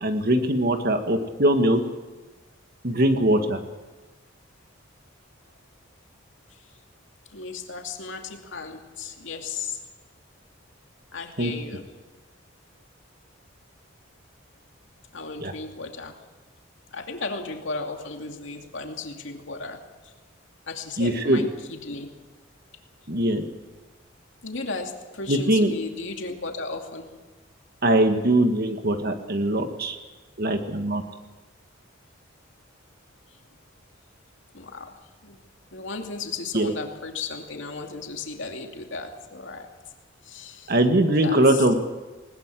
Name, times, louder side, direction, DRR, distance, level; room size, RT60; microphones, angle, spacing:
voice 1, 0.0-1.8 2.8-3.6 11.4-11.5 15.4-15.5 21.0-21.5 23.1-23.4 25.3-25.7 27.8-30.0 30.4-31.0 36.5-36.7 40.7-41.7, right 1 dB, 50° right, 6 dB, 1.9 m, -21 dB
voice 2, 7.3-9.8 11.1-11.9 15.1-16.2 16.9-20.1 20.7-22.2 24.4-27.1 34.5-35.4 35.7-39.7 40.2-40.7 41.2-41.7, left 4 dB, 70° left, 3 dB, 2.6 m, -35 dB
20.0 x 20.0 x 7.7 m, 1.2 s
head